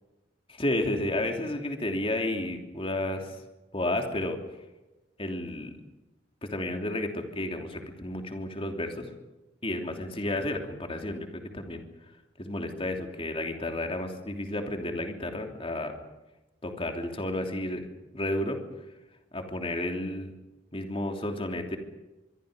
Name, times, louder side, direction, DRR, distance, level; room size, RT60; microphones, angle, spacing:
voice 1, 0.5-3.4 3.7-4.4 5.2-5.7 6.5-9.1 9.6-11.8 12.4-15.9 16.6-17.8 18.1-18.6 19.3-20.3 20.7-21.8, left 1 dB, 30° left, 4 dB, 3.0 m, -32 dB
25.0 x 24.0 x 5.2 m, 1.0 s
head